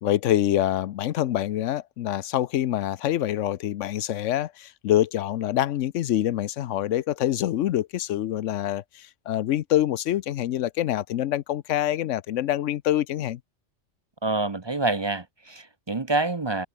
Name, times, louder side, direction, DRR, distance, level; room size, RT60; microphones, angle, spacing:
voice 1, 0.0-13.4, left 12 dB, 85° left, 1.0 m, -25 dB
voice 2, 14.2-16.7, right 2 dB, 25° right, 0.8 m, -27 dB
omnidirectional pair, 1.2 m